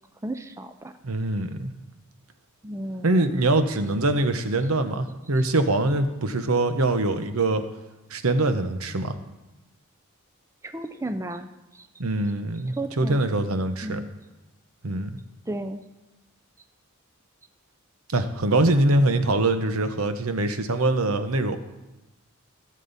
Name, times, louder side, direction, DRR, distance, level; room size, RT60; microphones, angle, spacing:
voice 1, 0.2-0.9 2.6-3.2 10.6-11.9 12.7-13.2 13.8-14.1 15.5-15.8, right 1 dB, 15° right, 8 dB, 0.4 m, -33 dB
voice 2, 1.0-1.7 3.0-7.7 8.1-9.2 12.0-14.0 14.8-15.1 18.1-21.6, right 2 dB, 85° right, 9 dB, 1.0 m, -23 dB
16.5 x 7.6 x 4.1 m, 1.0 s
head